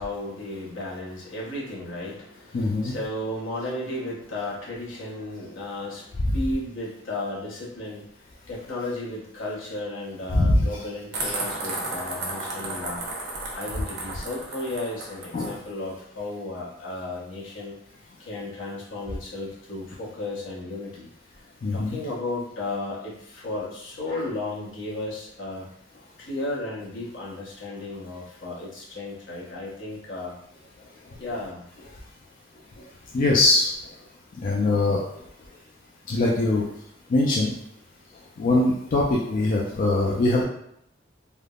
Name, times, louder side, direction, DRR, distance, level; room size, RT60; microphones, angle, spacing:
voice 1, 0.0-8.1 8.5-13.1 13.5-17.7 18.2-21.1 21.7-25.7 26.2-30.3 31.2-31.6, left 2 dB, 80° left, -5 dB, 0.9 m, -34 dB
voice 2, 2.5-3.0 10.3-10.7 15.3-15.5 21.6-22.0 33.1-33.7 34.4-35.0 36.1-36.7 37.1-37.5 38.4-40.4, left 2 dB, 45° left, -4 dB, 0.4 m, -22 dB
sound 1, 11.1-15.5, right 2 dB, 65° right, 0.7 m, -33 dB
3.3 x 2.0 x 2.3 m, 0.74 s
head